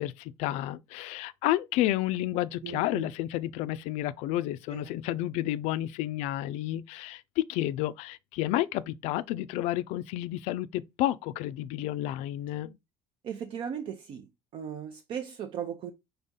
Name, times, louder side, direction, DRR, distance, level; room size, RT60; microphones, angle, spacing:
voice 1, 0.0-12.8, left 14 dB, 75° left, 0.4 m, -31 dB
voice 2, 2.6-3.1 4.7-4.9 13.2-14.3 14.5-15.9, right 8 dB, 50° right, 0.5 m, -37 dB
4.1 x 3.5 x 3.7 m
cardioid pair, 135°, 11 cm